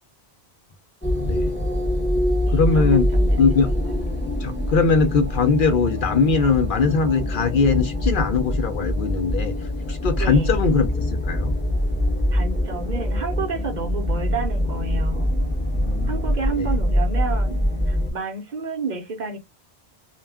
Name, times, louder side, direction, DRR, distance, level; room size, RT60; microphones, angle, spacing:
sound 1, 1.0-18.1, left 1 dB, 10° left, 0.9 m, -24 dB
voice 1, 1.1-1.5 2.5-3.1 3.4-3.7 4.4-9.5 9.9-11.5 15.7-16.2 16.6-16.7, left 5 dB, 60° left, 0.6 m, -21 dB
voice 2, 2.4-3.5 3.8-4.0 10.2-10.5 12.3-15.3 16.1-19.4, right 4 dB, 50° right, 0.7 m, -31 dB
2.4 x 2.2 x 3.3 m
omnidirectional pair, 1.1 m